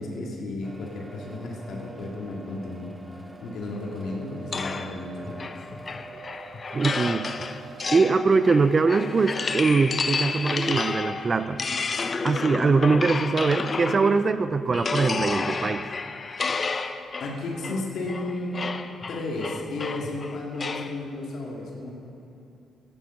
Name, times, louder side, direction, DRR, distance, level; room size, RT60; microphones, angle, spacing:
voice 1, 0.0-2.9 3.4-5.7 16.7-16.9 17.2-18.6 19.1-21.9, left 2 dB, 70° left, -2 dB, 2.0 m, -33 dB
sound 1, 0.6-10.7, right 3 dB, 10° right, 1.0 m, -45 dB
sound 2, 4.5-14.3 14.7-21.0, left 4 dB, 35° left, 0.5 m, -31 dB
voice 2, 6.7-7.3 7.9-11.6 12.2-15.9, right 4 dB, 35° right, 13 dB, 0.5 m, -22 dB
13.5 x 9.2 x 5.9 m, 2.7 s
cardioid pair, 90°, 0 cm